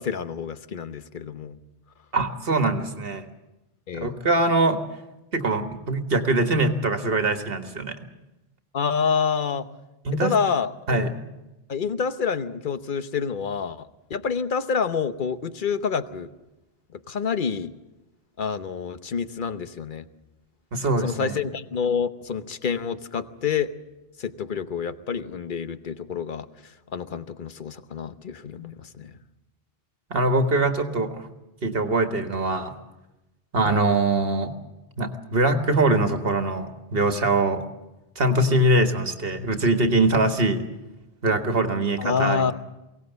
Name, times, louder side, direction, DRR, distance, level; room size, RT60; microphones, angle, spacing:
voice 1, 0.0-1.6 3.9-4.2 8.7-9.7 10.2-11.0 11.7-16.3 17.1-17.7 18.4-20.1 21.0-23.7 24.2-26.5 26.9-29.2 33.6-33.8 42.0-42.5, left 6 dB, 50° left, 12 dB, 1.0 m, -27 dB
voice 2, 2.1-3.2 3.9-4.8 5.3-8.0 10.1-10.3 10.9-11.2 20.7-21.4 30.1-31.3 31.6-32.7 33.5-34.5 35.0-37.6 38.2-40.7 41.2-42.5, right 2 dB, 60° right, 7 dB, 1.7 m, -23 dB
23.0 x 17.5 x 8.0 m, 0.99 s
omnidirectional pair, 1.1 m